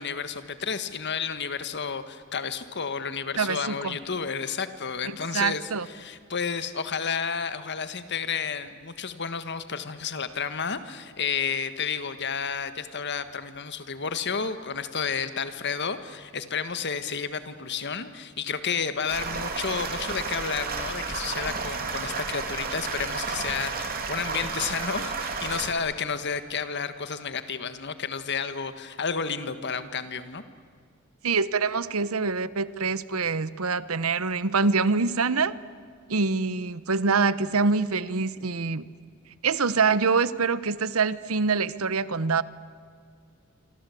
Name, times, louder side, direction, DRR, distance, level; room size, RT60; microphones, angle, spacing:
voice 1, 0.0-30.4, left 6 dB, 55° left, 11 dB, 1.6 m, -31 dB
voice 2, 3.4-4.0 5.3-5.9 31.2-35.5 36.1-38.9 39.4-42.4, right 4 dB, 85° right, 16 dB, 1.0 m, -25 dB
sound 1, 19.1-25.7, right 4 dB, 45° right, 3.4 m, -32 dB
27.0 x 25.5 x 8.5 m, 2.1 s
head